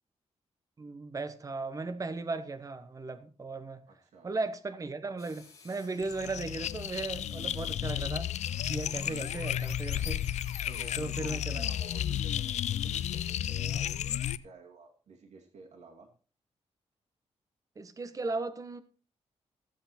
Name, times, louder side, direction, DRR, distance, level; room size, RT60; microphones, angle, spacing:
voice 1, 0.8-3.8 4.2-8.3 8.7-10.2 11.0-11.6 17.8-18.8, right 3 dB, 30° right, 1.0 m, -36 dB
voice 2, 3.9-4.3 9.2-9.6 10.7-16.1, right 4 dB, 80° right, 2.4 m, -53 dB
sound 1, 5.2-13.3, left 4 dB, 30° left, 5.1 m, -57 dB
sound 2, 6.0-14.4, left 10 dB, 85° left, 0.5 m, -33 dB
14.5 x 8.0 x 4.3 m
wide cardioid pair, 120°, 11 cm